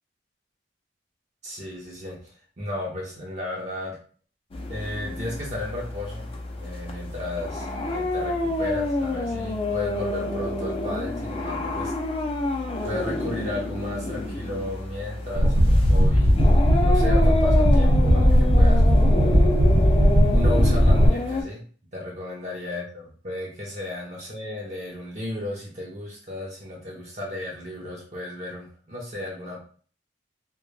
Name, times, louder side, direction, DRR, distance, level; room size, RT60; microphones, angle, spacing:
voice 1, 1.4-2.2 2.6-4.0 4.7-6.3 6.6-11.9 12.8-16.3 16.8-19.6 20.2-21.6 21.9-29.6, left 1 dB, 40° right, -3 dB, 0.6 m, -34 dB
sound 1, 4.5-21.4, left 2 dB, 30° left, 0.4 m, -29 dB
sound 2, 15.4-21.1, equal, 60° right, 1.0 m, -17 dB
2.2 x 2.1 x 3.1 m, 0.43 s
head